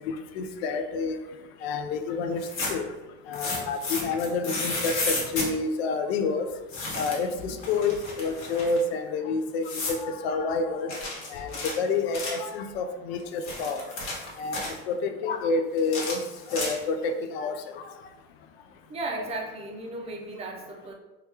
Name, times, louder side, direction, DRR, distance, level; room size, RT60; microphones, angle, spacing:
voice 1, 0.1-1.2 1.6-2.9 3.3-6.5 7.0-10.9 11.3-13.9 14.4-14.6 14.9-16.2 16.5-17.8, left 4 dB, 85° left, 8 dB, 0.5 m, -29 dB
sound 1, 2.3-2.9 3.3-5.5 6.7-7.3 7.6-8.8 9.6-10.0 10.9-12.5 13.2-14.8 15.8-17.0, left 2 dB, 60° left, 1.2 m, -32 dB
voice 2, 7.3-7.7 18.9-20.9, right 2 dB, 20° right, 0 dB, 0.4 m, -36 dB
2.9 x 2.3 x 3.3 m, 1.1 s
supercardioid pair, 135°, 30 cm